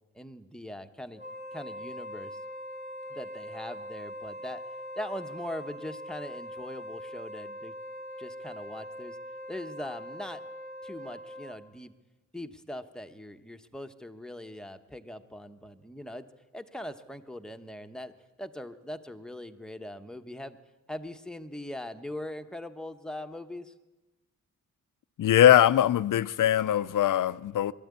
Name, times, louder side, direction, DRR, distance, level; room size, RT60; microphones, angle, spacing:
voice 1, 0.1-1.2 1.5-2.4 3.1-4.6 5.0-7.7 8.2-9.2 9.5-10.4 10.8-11.9 12.3-16.3 16.5-18.1 18.4-20.6 20.9-23.7, left 1 dB, ahead, 1.0 m, -41 dB
Wind instrument woodwind instrument, 1.1-11.7, equal, 25° right, 2.1 m, -42 dB
voice 2, 25.2-27.7, left 11 dB, 75° left, 0.7 m, -21 dB
23.0 x 13.5 x 9.7 m
wide cardioid pair, 150°, 32 cm